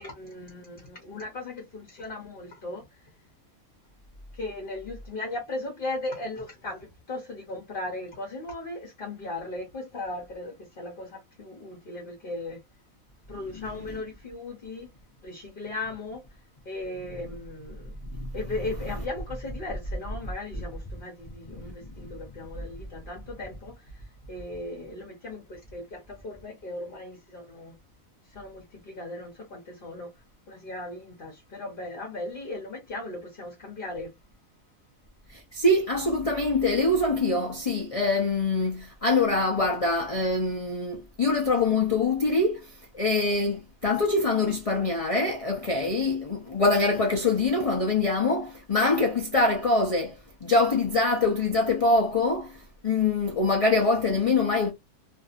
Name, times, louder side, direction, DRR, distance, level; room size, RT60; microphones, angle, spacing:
voice 1, 0.0-2.8 4.3-12.6 13.3-14.9 15.2-16.2 16.6-18.0 18.3-24.0 24.3-27.7 28.3-30.1 30.5-34.1, left 2 dB, 45° left, 0.9 m, -37 dB
voice 2, 13.5-14.0 18.1-18.4 21.5-22.1 35.3-54.7, left 3 dB, 65° left, 0.3 m, -24 dB
2.6 x 2.4 x 2.4 m
omnidirectional pair, 1.5 m